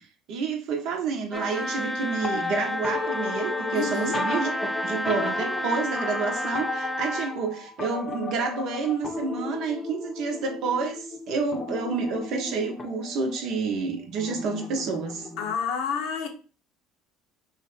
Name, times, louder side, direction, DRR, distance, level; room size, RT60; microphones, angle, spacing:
voice 1, 0.0-15.3, right 4 dB, 60° right, 0.7 m, -29 dB
sound 1, 1.3-15.6, left 3 dB, 25° left, 0.6 m, -35 dB
Trumpet, 1.3-7.4, equal, 10° right, 0.8 m, -31 dB
voice 2, 3.7-4.2 15.4-16.3, left 6 dB, 70° left, 0.6 m, -29 dB
3.0 x 2.1 x 3.2 m
hypercardioid pair, 70°, 0 cm